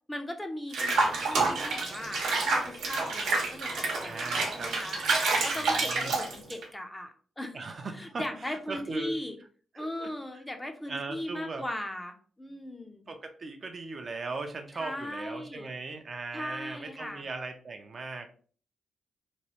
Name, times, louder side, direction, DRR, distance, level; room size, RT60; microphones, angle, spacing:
voice 1, 0.1-5.0 5.3-7.6 7.9-9.4 9.7-13.1 14.7-15.7 16.3-17.2, left 1 dB, 15° left, 5 dB, 0.5 m, -38 dB
Water / Bathtub (filling or washing), 0.7-6.6, right 3 dB, 85° right, 0.9 m, -28 dB
voice 2, 4.0-4.7 5.6-6.2 7.5-9.1 9.7-10.1 10.9-11.6 13.1-18.3, right 3 dB, 45° right, 5 dB, 0.5 m, -39 dB
3.1 x 2.2 x 2.8 m, 0.43 s
cardioid pair, 90°, 0 cm